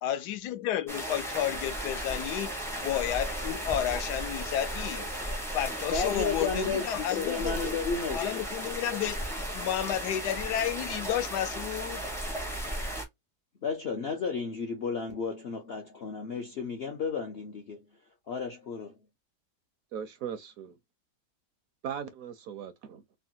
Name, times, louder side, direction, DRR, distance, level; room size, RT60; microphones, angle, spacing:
voice 1, 0.0-2.5 2.8-5.1 5.5-7.8 8.1-9.2 9.5-12.0, left 11 dB, 80° left, 1.1 m, -31 dB
sound 1, 0.9-13.0, right 1 dB, 5° left, 0.4 m, -35 dB
voice 2, 5.9-8.4 13.6-17.8 18.3-18.9, left 5 dB, 65° left, 0.6 m, -33 dB
voice 3, 19.9-20.8 21.8-23.0, right 8 dB, 70° right, 0.9 m, -38 dB
3.2 x 2.2 x 2.7 m
omnidirectional pair, 1.7 m